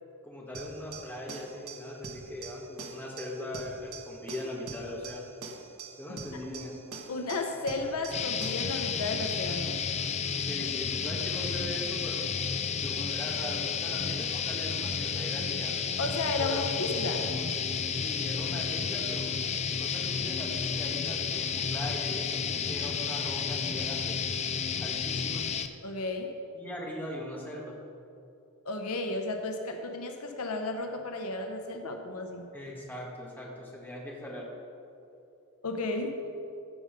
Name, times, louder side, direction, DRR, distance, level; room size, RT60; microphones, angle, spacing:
voice 1, 0.2-5.3 6.0-6.8 10.4-12.3 12.8-15.8 16.4-16.7 18.0-19.3 19.7-24.2 24.8-25.4 26.5-27.8 32.5-34.5, left 1 dB, 10° left, -3 dB, 1.7 m, -40 dB
sound 1, 0.5-8.7, right 5 dB, 70° right, 1.4 m, -45 dB
voice 2, 7.1-9.8 16.0-17.3 25.8-26.3 28.7-32.5 35.6-36.2, left 2 dB, 75° left, 5 dB, 0.9 m, -33 dB
sound 2, 8.1-25.7, left 6 dB, 30° left, 0.4 m, -31 dB
15.5 x 5.5 x 5.2 m, 2.6 s
head